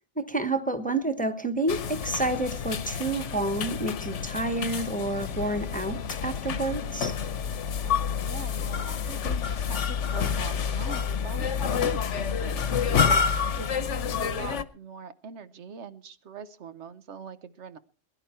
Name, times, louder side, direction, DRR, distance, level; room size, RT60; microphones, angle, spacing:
voice 1, 0.2-7.2, right 2 dB, 5° left, 8 dB, 1.1 m, -29 dB
sound 1, 1.7-14.6, left 6 dB, 85° left, 1.2 m, -29 dB
voice 2, 7.8-17.8, right 5 dB, 75° right, 12 dB, 1.2 m, -43 dB
21.0 x 11.0 x 4.4 m, 0.37 s
omnidirectional pair, 1.2 m